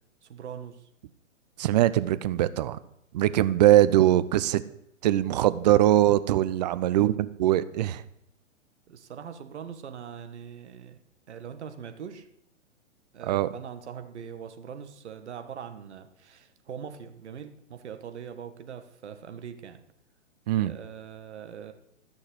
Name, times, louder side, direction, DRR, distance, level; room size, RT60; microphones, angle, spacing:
voice 1, 0.2-0.9 8.9-11.0 11.3-12.3 13.1-19.8 20.6-21.7, right 7 dB, 60° right, 8 dB, 1.7 m, -42 dB
voice 2, 1.6-2.8 3.1-4.6 5.0-8.0 13.3-13.5 20.5-20.7, right 13 dB, 35° right, 15 dB, 0.6 m, -22 dB
13.5 x 6.5 x 7.8 m, 0.77 s
figure-of-eight pair, 120°, 39 cm